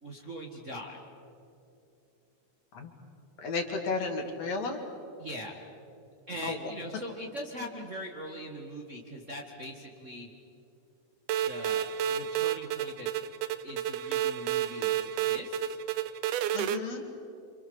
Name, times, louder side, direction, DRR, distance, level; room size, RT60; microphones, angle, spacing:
voice 1, 0.0-1.0 5.2-5.6 6.3-10.3 11.5-13.1 13.6-15.8, equal, 30° right, 0 dB, 1.7 m, -41 dB
voice 2, 3.4-4.8 6.4-6.7 16.5-17.1, left 4 dB, 60° left, 4 dB, 3.2 m, -33 dB
sound 1, 11.3-16.8, right 10 dB, 90° right, 2.3 m, -30 dB
27.5 x 27.0 x 7.1 m, 2.7 s
omnidirectional pair, 3.6 m